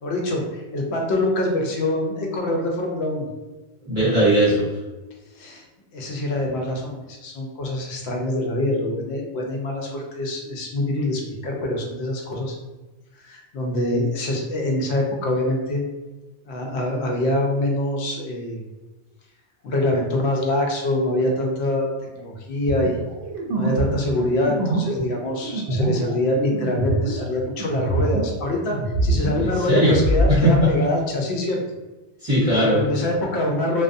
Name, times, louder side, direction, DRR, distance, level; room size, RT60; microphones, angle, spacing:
voice 1, 0.0-3.3 5.4-5.6 5.9-12.6 13.2-15.8 16.5-18.6 19.6-23.0 23.6-31.6 32.7-33.8, left 1 dB, 75° left, 0 dB, 0.8 m, -25 dB
voice 2, 3.9-4.7 29.4-30.0 30.3-30.7 32.2-32.8, equal, 35° right, -10 dB, 0.9 m, -18 dB
sound 1, 22.7-28.4 28.7-30.3, right 2 dB, 65° right, 0.7 m, -24 dB
2.3 x 2.2 x 2.5 m, 1.1 s
omnidirectional pair, 1.1 m